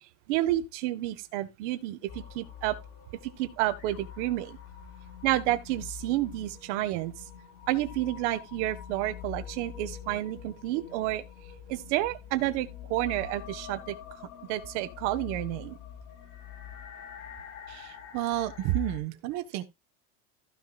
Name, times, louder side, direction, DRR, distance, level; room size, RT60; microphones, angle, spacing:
voice 1, 0.3-2.8 3.2-4.6 5.2-7.1 7.7-11.2 11.7-14.2 14.5-15.8, right 15 dB, 60° right, 1.6 m, -30 dB
sound 1, 2.1-19.0, left 9 dB, 90° left, 4.2 m, -45 dB
voice 2, 17.7-19.6, right 12 dB, 40° right, 1.4 m, -31 dB
15.5 x 6.3 x 2.5 m
cardioid pair, 170°, 40 cm